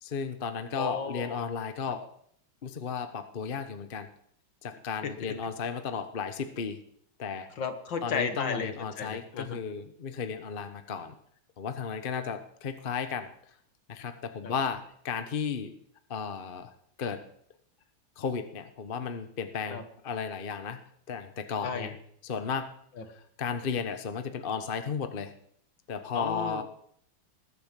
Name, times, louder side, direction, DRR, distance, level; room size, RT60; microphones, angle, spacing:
voice 1, 0.0-2.1 2.6-4.1 4.6-6.8 7.2-7.5 8.0-11.2 11.6-13.3 13.9-15.7 16.1-16.7 17.0-17.2 18.2-20.8 21.1-22.0 22.2-22.7 23.1-25.3 25.9-26.6, left 6 dB, 35° left, 9 dB, 1.0 m, -34 dB
voice 2, 0.7-1.5 5.0-5.4 7.6-9.6 14.4-14.5 19.7-19.8 21.6-21.9 23.0-23.1 26.1-26.6, left 5 dB, 65° left, 8 dB, 2.1 m, -34 dB
20.0 x 8.6 x 7.5 m, 0.67 s
omnidirectional pair, 2.3 m